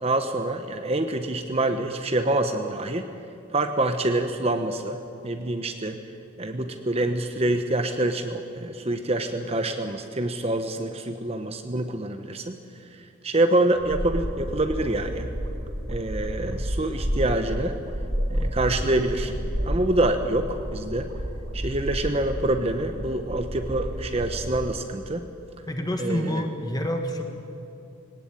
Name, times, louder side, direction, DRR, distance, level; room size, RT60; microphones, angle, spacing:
voice 1, 0.0-3.1 3.5-6.0 6.4-12.6 13.2-15.3 15.9-17.8 18.3-19.3 19.6-21.1 21.5-25.2 26.0-26.4, right 2 dB, 30° right, 6 dB, 0.9 m, -26 dB
sound 1, 13.7-24.6, equal, 75° right, 3.8 m, -31 dB
voice 2, 25.7-27.2, equal, 20° left, 4 dB, 1.8 m, -28 dB
20.0 x 18.5 x 9.0 m, 2.7 s
head